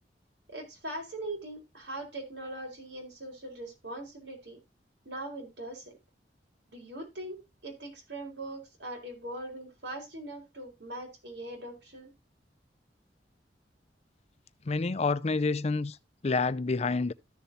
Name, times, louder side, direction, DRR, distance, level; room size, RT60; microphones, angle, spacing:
voice 1, 0.5-4.6 5.0-6.0 6.7-12.1, right 1 dB, 85° right, 4.6 m, -41 dB
voice 2, 14.6-16.0 16.2-17.1, left 3 dB, 40° left, 0.5 m, -28 dB
14.0 x 7.0 x 2.7 m
head